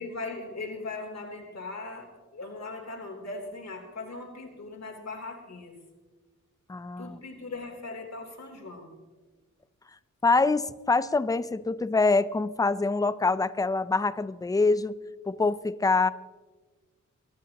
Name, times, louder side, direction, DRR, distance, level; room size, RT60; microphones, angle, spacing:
voice 1, 0.0-5.8 7.0-8.9, left 3 dB, 55° left, 1 dB, 3.3 m, -39 dB
voice 2, 6.7-7.2 10.2-15.0 15.3-16.1, left 3 dB, 10° left, 15 dB, 0.4 m, -25 dB
24.5 x 13.0 x 2.9 m, 1.3 s
wide cardioid pair, 110°, 31 cm